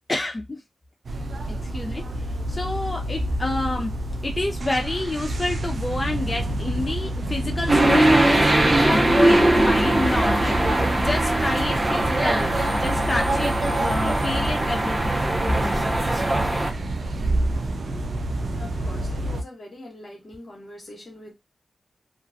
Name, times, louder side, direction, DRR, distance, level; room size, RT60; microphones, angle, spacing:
voice 1, 0.1-0.6 1.5-2.0 2.5-3.9 4.2-15.2, left 2 dB, 35° left, 0.4 m, -28 dB
sound 1, 1.0-19.4, right 1 dB, 70° right, 0.4 m, -28 dB
sound 2, 7.7-16.7, right 1 dB, 35° right, 0.6 m, -21 dB
voice 2, 18.6-21.3, left 1 dB, 60° left, 0.9 m, -43 dB
2.4 x 2.2 x 2.5 m
cardioid pair, 45°, 0 cm